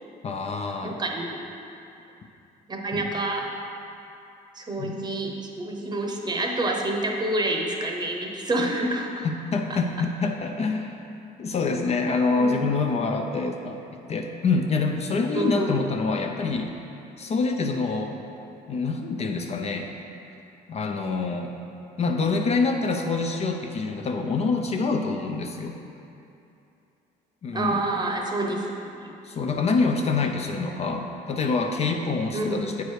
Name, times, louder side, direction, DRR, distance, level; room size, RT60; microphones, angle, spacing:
voice 1, 0.2-1.0 2.9-3.1 4.8-5.0 9.5-10.9 11.4-13.8 14.1-16.7 17.2-18.2 18.7-19.9 20.7-21.5 22.0-25.8 27.4-27.8 29.2-32.8, left 4 dB, 40° left, 3 dB, 0.5 m, -26 dB
voice 2, 0.8-1.4 2.7-3.5 4.5-9.3 9.7-9.8 12.3-12.7 15.3-15.8 27.5-28.7 29.0-29.1 32.3-32.6, right 2 dB, 25° right, 1 dB, 0.9 m, -28 dB
8.0 x 4.7 x 4.8 m, 2.7 s
cardioid pair, 110°, 17 cm